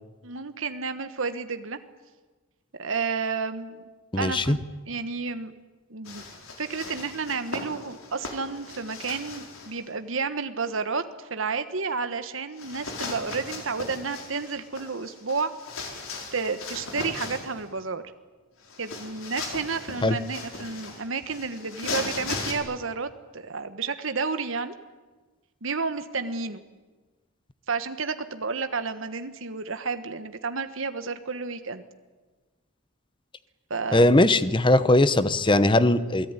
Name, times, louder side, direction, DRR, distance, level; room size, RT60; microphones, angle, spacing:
voice 1, 0.2-1.8 2.8-3.9 4.2-4.6 4.9-5.5 5.9-6.2 6.6-15.5 16.3-18.0 18.8-24.7 25.6-26.6 27.7-31.8 33.7-34.1, right 4 dB, 70° right, 9 dB, 1.3 m, -31 dB
voice 2, 4.1-4.6 20.0-20.2 33.9-36.3, left 1 dB, 25° left, 14 dB, 0.9 m, -20 dB
sound 1, 6.0-9.8 12.6-17.6 18.6-22.5, left 3 dB, 80° left, 5.0 m, -37 dB
28.0 x 18.0 x 9.8 m, 1.3 s
head